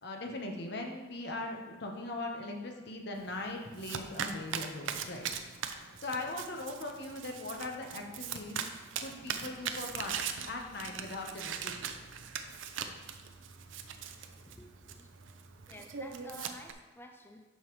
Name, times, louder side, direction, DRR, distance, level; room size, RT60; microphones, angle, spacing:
voice 1, 0.0-5.3 6.0-8.6 9.0-11.7, left 2 dB, 55° left, 1 dB, 1.1 m, -40 dB
Domestic sounds home sounds, 3.2-16.7, right 7 dB, 70° right, 0.5 m, -41 dB
voice 2, 14.5-15.1 15.7-17.4, left 1 dB, 10° left, 4 dB, 0.4 m, -51 dB
11.0 x 5.5 x 3.1 m, 1.3 s
head